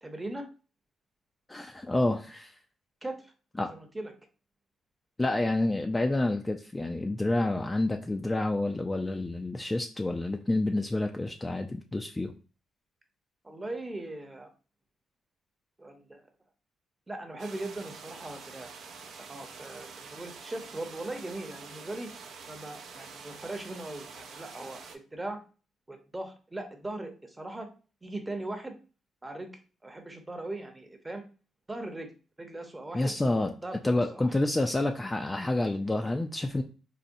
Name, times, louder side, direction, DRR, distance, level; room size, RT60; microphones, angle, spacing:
voice 1, 0.0-0.4 3.0-3.3 3.7-4.1 13.4-14.5 15.8-16.2 17.1-18.7 19.2-22.1 22.5-25.4 25.9-27.7 28.0-28.8 29.2-31.2 31.7-32.1 32.4-33.2 33.6-34.4, right 2 dB, 15° right, 5 dB, 0.7 m, -39 dB
voice 2, 1.5-2.5 3.6-3.7 5.2-12.3 32.9-33.5 33.8-36.6, left 2 dB, 15° left, 4 dB, 0.3 m, -28 dB
sound 1, 17.4-25.0, right 5 dB, 80° right, 0.5 m, -47 dB
4.0 x 2.0 x 2.6 m, 0.35 s
cardioid pair, 90°, 0 cm